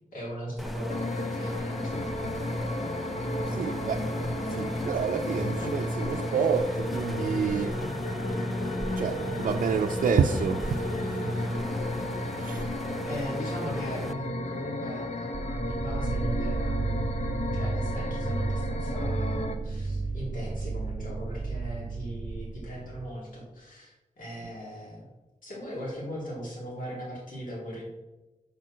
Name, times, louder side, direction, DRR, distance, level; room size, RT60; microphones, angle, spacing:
voice 1, 0.1-2.0 3.4-3.6 11.4-11.6 13.0-17.2 17.5-25.1 25.4-27.9, equal, 85° left, 3.0 m, -39 dB
sound 1, 0.6-14.1, equal, ahead, 0.5 m, -35 dB
sound 2, 0.9-19.6, left 2 dB, 55° left, 0.7 m, -34 dB
voice 2, 3.5-4.0 4.5-7.8 9.0-11.5 12.4-12.7, right 6 dB, 80° right, 0.4 m, -29 dB
sound 3, 15.3-23.2, right 3 dB, 45° right, 0.8 m, -32 dB
7.6 x 6.1 x 4.4 m
wide cardioid pair, 105°, 14 cm